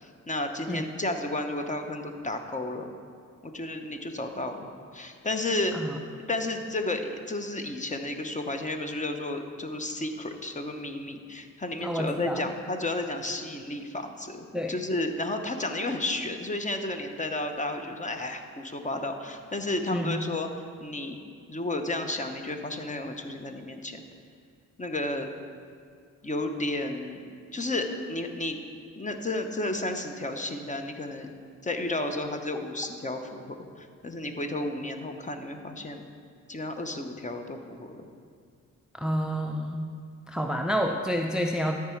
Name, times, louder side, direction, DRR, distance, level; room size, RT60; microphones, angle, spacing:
voice 1, 0.0-2.9 3.4-5.8 6.3-20.5 20.8-21.2 21.5-24.0 24.8-25.3 26.2-27.2 27.5-28.6 29.0-31.3 31.6-36.0 36.5-38.1, left 2 dB, 25° left, 6 dB, 0.8 m, -32 dB
voice 2, 11.8-12.4 14.5-14.8 19.9-20.2 38.9-39.9 40.3-41.8, equal, 5° right, 3 dB, 0.4 m, -29 dB
13.0 x 4.8 x 4.5 m, 2.2 s
cardioid pair, 80°, 31 cm